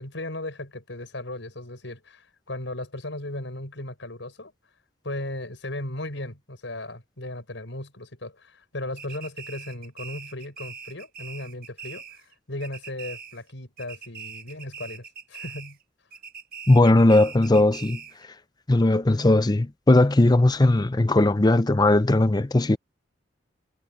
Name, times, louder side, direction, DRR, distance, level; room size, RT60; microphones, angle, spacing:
voice 1, 0.0-4.5 5.0-12.2 12.5-15.8, left 1 dB, 80° left, 5.4 m, -36 dB
sound 1, 9.0-12.3 12.6-13.5 13.8-15.8 16.1-18.2, right 6 dB, 55° right, 1.6 m, -42 dB
voice 2, 16.7-18.0 18.7-22.8, left 2 dB, 20° left, 0.6 m, -18 dB
head